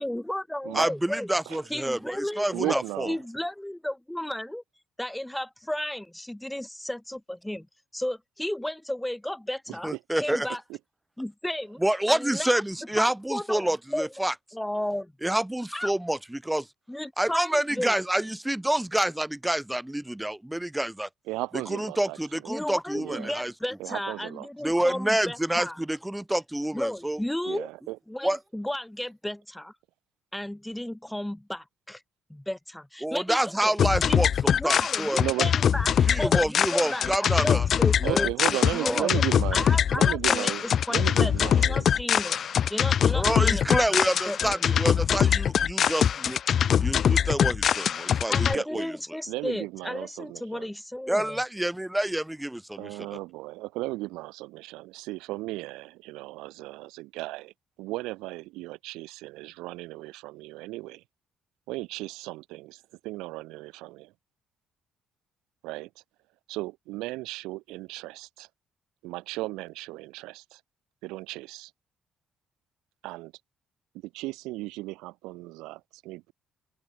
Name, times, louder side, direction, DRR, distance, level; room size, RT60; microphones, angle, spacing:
voice 1, 0.0-1.3 1.7-2.8 3.1-4.6 5.0-7.7 7.9-10.6 11.2-11.8 12.1-12.6 13.0-14.1 14.5-15.1 15.7-15.9 16.9-18.0 22.5-25.8 26.7-27.7 28.1-29.7 30.3-32.0 32.3-33.7 34.1-34.2 34.6-39.2 39.5-42.4 42.7-43.9 44.3-44.6 48.3-51.4, left 1 dB, 5° left, 5.0 m, -33 dB
voice 2, 0.7-3.1 9.8-10.5 11.8-14.3 15.2-16.7 17.2-21.1 21.7-23.5 24.6-27.2 28.2-28.4 33.0-35.3 36.0-37.7 38.0-38.2 38.8-39.0 43.1-46.4 46.8-49.2 51.1-53.2, right 1 dB, 10° right, 4.8 m, -28 dB
voice 3, 2.5-3.2 10.7-10.8 21.3-22.6 22.9-23.4 23.8-24.5 27.4-28.0 35.2-35.5 38.0-41.9 48.5-48.9 49.3-50.7 52.8-57.5 57.8-61.0 61.7-64.1 65.6-66.0 66.5-68.5 69.0-70.6 71.0-71.7 73.0-73.3 74.0-76.3, right 20 dB, 75° right, 4.7 m, -35 dB
sound 1, 33.8-48.5, left 8 dB, 55° left, 0.9 m, -23 dB
open air
hypercardioid pair, 45°, 0 cm